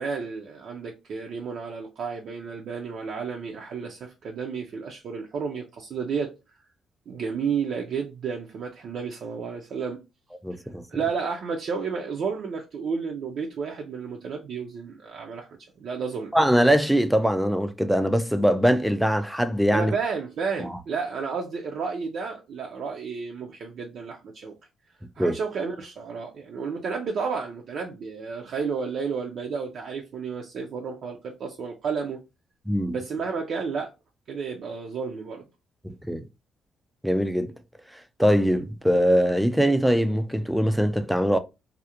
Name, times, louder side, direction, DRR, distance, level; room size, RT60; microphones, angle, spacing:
voice 1, 0.0-6.3 7.1-10.0 10.9-15.5 15.8-16.3 19.7-24.5 25.2-32.2 32.9-33.9 34.3-35.4, right 5 dB, 65° right, 0.4 m, -31 dB
voice 2, 10.4-10.8 16.3-20.0 20.6-20.8 25.2-25.4 32.7-33.0 35.8-36.2 37.0-37.5 38.2-41.4, equal, ahead, 0.3 m, -22 dB
2.4 x 2.0 x 2.8 m
cardioid pair, 90°, 0 cm